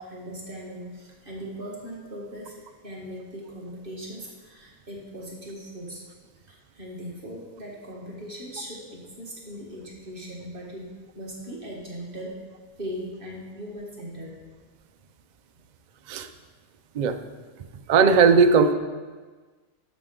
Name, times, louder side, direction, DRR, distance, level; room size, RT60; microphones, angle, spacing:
voice 1, 0.0-6.0 6.5-12.4 12.8-14.4, equal, 40° right, -3 dB, 1.7 m, -39 dB
voice 2, 17.9-18.7, right 5 dB, 65° right, 8 dB, 0.4 m, -17 dB
12.0 x 6.3 x 3.7 m, 1.4 s
omnidirectional pair, 1.5 m